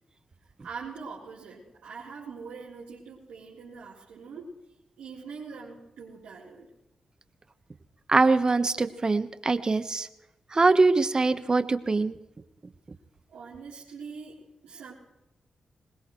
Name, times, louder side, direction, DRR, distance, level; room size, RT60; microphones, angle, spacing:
voice 1, 0.6-4.5 5.0-6.7 13.3-14.4 14.6-14.9, right 5 dB, 90° right, -9 dB, 3.9 m, -43 dB
voice 2, 8.1-10.1 10.5-12.2, right 3 dB, 40° right, 11 dB, 1.2 m, -23 dB
22.0 x 20.0 x 3.2 m, 0.94 s
supercardioid pair, 50°, 2 cm